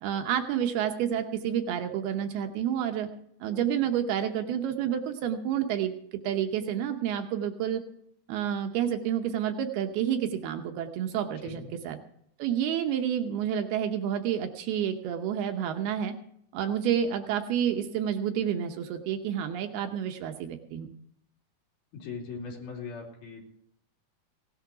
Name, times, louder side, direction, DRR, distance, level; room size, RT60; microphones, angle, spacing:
voice 1, 0.0-3.1 3.4-7.8 8.3-12.0 12.4-16.1 16.5-20.9, right 9 dB, 80° right, 6 dB, 2.8 m, -29 dB
voice 2, 11.3-11.8 21.9-23.4, left 5 dB, 65° left, -1 dB, 4.6 m, -40 dB
17.5 x 10.5 x 4.8 m, 0.71 s
omnidirectional pair, 4.6 m